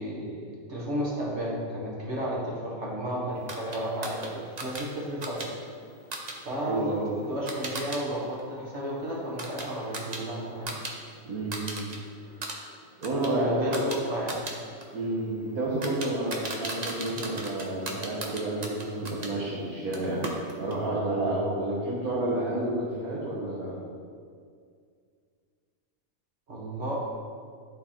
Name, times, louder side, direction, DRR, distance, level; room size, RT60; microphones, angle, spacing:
voice 1, 0.0-5.4 6.4-7.0 7.3-10.8 13.2-14.4 26.5-26.9, right 1 dB, 50° right, -5 dB, 1.6 m, -33 dB
sound 1, 3.5-8.0 8.3-10.9 11.2-12.0 12.3-19.3 19.9-20.8, right 2 dB, 35° right, 0.8 m, -38 dB
voice 2, 6.7-7.3 11.2-11.9 13.0-13.8 14.9-20.2 20.6-23.8, right 1 dB, 75° right, -6 dB, 1.7 m, -30 dB
11.5 x 4.1 x 4.3 m, 2.2 s
omnidirectional pair, 1.5 m